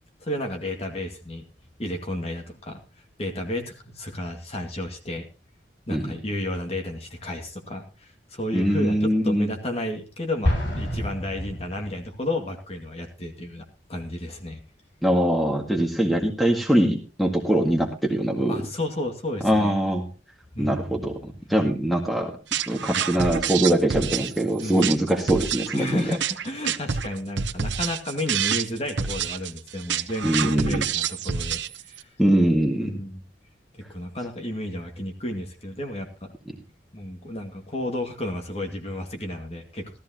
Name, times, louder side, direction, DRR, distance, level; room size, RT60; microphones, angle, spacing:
voice 1, 0.2-1.4 1.8-2.8 3.2-5.2 5.9-14.6 18.5-19.7 20.5-21.0 24.6-24.9 25.7-31.6 31.9-32.1 32.8-33.2 33.7-36.3 36.9-40.0, left 1 dB, 35° left, 3 dB, 2.1 m, -32 dB
voice 2, 8.5-9.5 15.0-18.6 19.4-20.0 20.6-22.3 22.7-26.0 30.2-30.9 32.2-32.9, right 1 dB, ahead, 2 dB, 1.9 m, -22 dB
Explosion, 10.4-12.3, equal, 85° left, 7.3 m, -27 dB
sound 1, 22.5-32.0, right 7 dB, 80° right, 0.8 m, -28 dB
16.5 x 14.0 x 2.9 m, 0.29 s
head